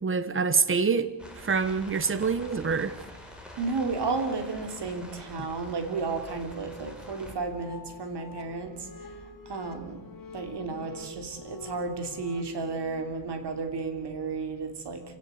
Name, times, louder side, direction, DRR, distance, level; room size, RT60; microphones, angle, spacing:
voice 1, 0.0-2.9, right 5 dB, 25° right, 1.2 m, -26 dB
sound 1, 1.2-7.3, left 1 dB, ahead, 4.7 m, -46 dB
voice 2, 3.6-8.8 9.5-10.0 10.3-15.0, right 4 dB, 60° right, 3.4 m, -32 dB
sound 2, 7.1-12.4, left 4 dB, 45° left, 3.1 m, -46 dB
26.5 x 17.5 x 8.2 m
wide cardioid pair, 160°, 46 cm